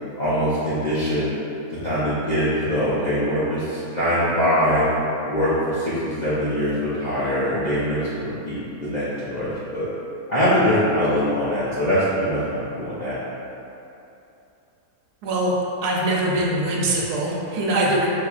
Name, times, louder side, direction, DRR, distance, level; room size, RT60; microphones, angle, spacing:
voice 1, 0.2-1.3 1.8-4.8 5.2-9.9 10.3-13.2, equal, 60° left, -12 dB, 0.4 m, -23 dB
voice 2, 15.8-18.1, right 1 dB, 90° right, -3 dB, 1.2 m, -22 dB
4.6 x 2.8 x 2.3 m, 2.8 s
omnidirectional pair, 1.6 m